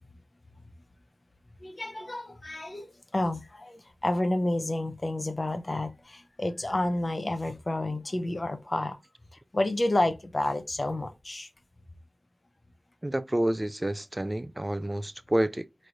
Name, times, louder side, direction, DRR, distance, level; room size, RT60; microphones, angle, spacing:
voice 1, 1.6-2.9 3.1-9.0 9.5-11.5, left 1 dB, 45° left, 0.7 m, -30 dB
voice 2, 13.0-15.9, right 1 dB, 25° right, 0.3 m, -29 dB
4.5 x 3.2 x 2.6 m
wide cardioid pair, 60°, 0 cm